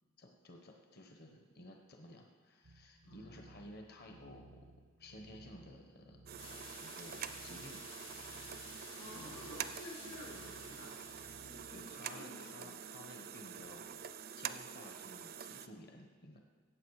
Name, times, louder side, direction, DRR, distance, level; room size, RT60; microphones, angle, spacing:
voice 1, 0.2-4.6 5.0-6.2 6.5-7.9 8.2-8.7 9.1-9.6 11.7-14.1 14.3-16.4, left 1 dB, 50° left, 3 dB, 1.1 m, -55 dB
sound 1, 2.6-11.9, right 2 dB, 85° right, 0.8 m, -60 dB
voice 2, 3.0-3.3 8.9-11.0 11.4-12.8, left 1 dB, 85° left, -5 dB, 3.2 m, -52 dB
sound 2, 6.3-15.7, right 8 dB, 45° right, 0.5 m, -46 dB
sound 3, 6.4-12.2, left 5 dB, 65° left, 1.8 m, -54 dB
15.5 x 8.3 x 4.8 m, 1.5 s
head